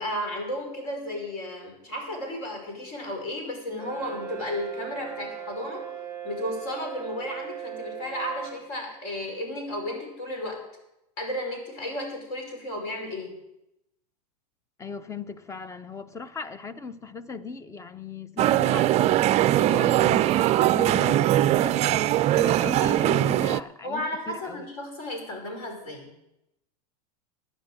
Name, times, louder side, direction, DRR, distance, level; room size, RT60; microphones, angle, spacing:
voice 1, 0.0-5.8 6.2-10.6 11.2-13.3 19.6-19.8 23.8-26.1, left 1 dB, 55° left, 5.4 m, -33 dB
Brass instrument, 3.8-8.7, right 10 dB, 15° right, 2.2 m, -38 dB
voice 2, 14.8-19.2 19.7-21.8 22.3-24.7, left 5 dB, 15° left, 0.7 m, -38 dB
sound 1, 18.4-23.6, right 13 dB, 30° right, 0.4 m, -21 dB
15.5 x 10.0 x 5.1 m
hypercardioid pair, 110°, 20 cm